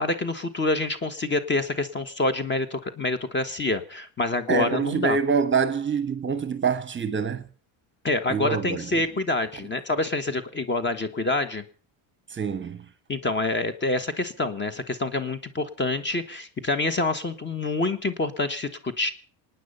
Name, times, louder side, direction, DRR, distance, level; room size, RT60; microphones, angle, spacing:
voice 1, 0.0-5.2 8.0-11.6 13.1-19.1, left 2 dB, 25° left, 1.5 m, -27 dB
voice 2, 4.5-7.4 8.3-8.8 12.3-12.8, right 5 dB, 25° right, 1.3 m, -25 dB
25.5 x 9.6 x 5.5 m
supercardioid pair, 115°, 47 cm